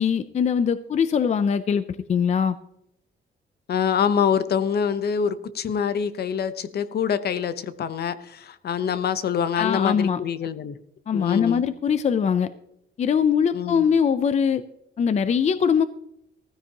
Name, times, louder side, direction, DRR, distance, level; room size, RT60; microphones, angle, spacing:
voice 1, 0.0-1.8 2.1-2.6 9.6-10.2 11.1-12.5 13.0-14.6 15.0-15.9, left 7 dB, 35° left, 13 dB, 0.4 m, -22 dB
voice 2, 3.7-10.8 11.1-11.6 13.5-13.9, left 7 dB, 55° left, 13 dB, 0.8 m, -25 dB
16.0 x 14.5 x 2.9 m, 0.80 s
wide cardioid pair, 180°, 20 cm